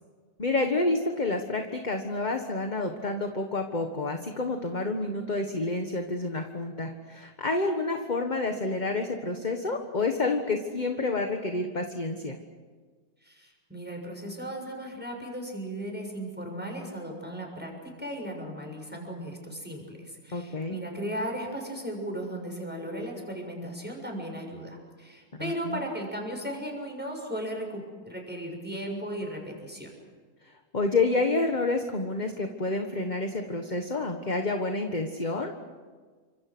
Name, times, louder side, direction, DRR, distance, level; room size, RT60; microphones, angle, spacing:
voice 1, 0.4-12.4 20.3-20.7 25.4-25.8 30.7-35.5, left 3 dB, 30° left, 4 dB, 1.5 m, -29 dB
voice 2, 13.2-29.9, equal, 5° right, 1 dB, 6.7 m, -36 dB
29.5 x 25.5 x 6.2 m, 1.5 s
omnidirectional pair, 1.7 m